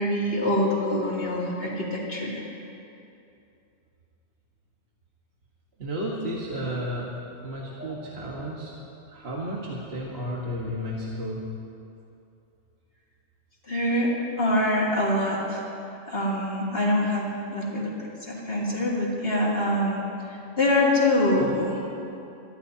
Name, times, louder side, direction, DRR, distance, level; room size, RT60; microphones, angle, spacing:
voice 1, 0.0-2.4 7.8-7.9 13.7-14.1 14.4-15.7 16.1-17.9 18.2-20.0 20.3-21.8, left 1 dB, 50° left, -5 dB, 3.0 m, -25 dB
voice 2, 5.8-7.1 7.4-8.7 9.1-11.4 21.4-21.6, equal, 55° right, -4 dB, 1.7 m, -32 dB
23.0 x 14.5 x 2.8 m, 2.7 s
omnidirectional pair, 1.3 m